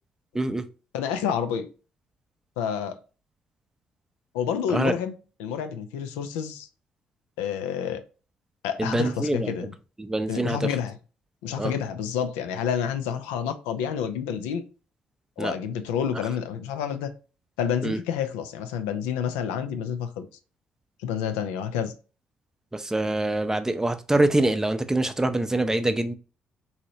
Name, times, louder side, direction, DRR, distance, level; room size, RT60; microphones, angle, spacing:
voice 1, 0.9-1.7 2.6-3.0 4.3-5.1 5.4-6.7 7.4-8.0 8.6-9.7 10.3-11.0 11.4-14.6 15.4-17.1 17.6-20.3 21.0-21.9, left 8 dB, 80° left, 0.4 m, -29 dB
voice 2, 8.8-9.5 10.0-10.7 11.6-11.7 15.4-15.5 17.8-18.0 22.7-26.1, right 2 dB, 15° right, 0.5 m, -25 dB
3.0 x 2.8 x 2.7 m
hypercardioid pair, 45°, 4 cm